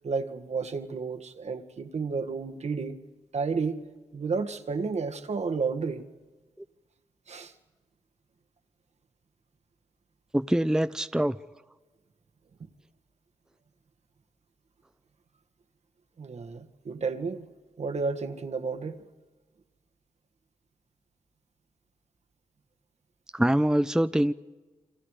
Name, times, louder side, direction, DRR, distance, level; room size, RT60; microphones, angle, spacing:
voice 1, 0.0-3.0 3.3-3.8 4.1-6.1 7.3-7.5 16.2-17.5 17.8-19.0, right 4 dB, 60° right, 1.9 m, -31 dB
voice 2, 10.3-11.4 23.3-24.3, right 1 dB, 5° right, 0.7 m, -24 dB
29.0 x 25.5 x 5.0 m
cardioid pair, 50°, 13 cm